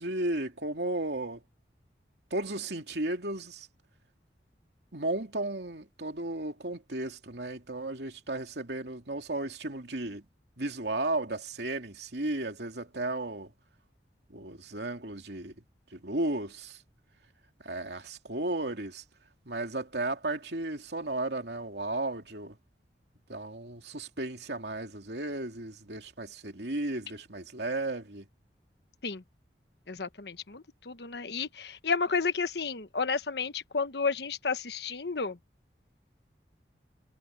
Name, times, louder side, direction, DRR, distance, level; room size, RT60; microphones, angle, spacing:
voice 1, 0.0-1.4 2.3-3.7 4.9-10.2 10.6-13.5 14.3-15.5 15.9-16.8 17.6-19.0 19.5-22.6 23.3-28.2, right 2 dB, 70° right, 2.7 m, -34 dB
voice 2, 29.9-35.4, left 5 dB, 70° left, 1.2 m, -32 dB
head